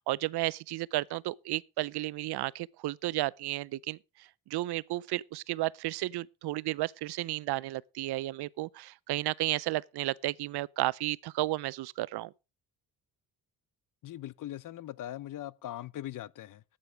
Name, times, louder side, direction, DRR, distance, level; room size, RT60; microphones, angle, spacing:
voice 1, 0.0-4.0 4.5-12.3, right 17 dB, 75° right, 0.6 m, -33 dB
voice 2, 14.0-16.6, left 13 dB, 55° left, 0.6 m, -40 dB
12.5 x 8.8 x 5.0 m
cardioid pair, 170°, 40 cm